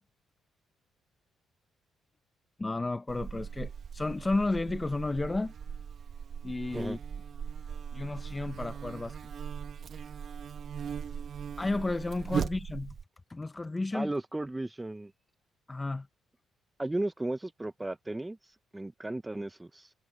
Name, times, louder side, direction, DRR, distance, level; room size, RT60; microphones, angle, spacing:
voice 1, 2.6-5.5 6.4-7.0 7.9-9.3 11.6-13.0 13.3-14.1 15.7-16.1, left 2 dB, 20° left, 0.7 m, -32 dB
Buzz, 3.1-13.0, right 7 dB, 55° right, 1.6 m, -39 dB
voice 2, 13.9-15.1 16.8-19.9, right 2 dB, 15° right, 0.7 m, -35 dB
cardioid pair, 90°, 0 cm